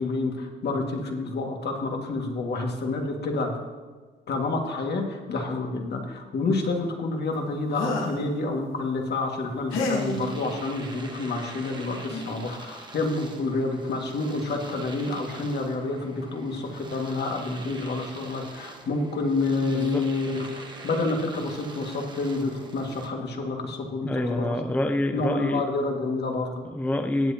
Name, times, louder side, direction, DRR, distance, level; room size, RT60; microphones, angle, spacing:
voice 1, 0.0-3.6 4.3-24.6 25.1-26.6, left 3 dB, 55° left, 1 dB, 2.0 m, -28 dB
sound 1, 7.7-8.3 9.7-10.2 11.6-11.7 12.1-12.4, left 3 dB, 80° left, 1.8 m, -29 dB
Domestic sounds home sounds, 9.7-23.1, right 2 dB, 20° right, 1.3 m, -45 dB
voice 2, 19.6-20.1 24.0-25.7 26.6-27.3, left 1 dB, 10° left, 7 dB, 0.6 m, -27 dB
18.0 x 8.1 x 2.9 m, 1.4 s
cardioid pair, 90°, 20 cm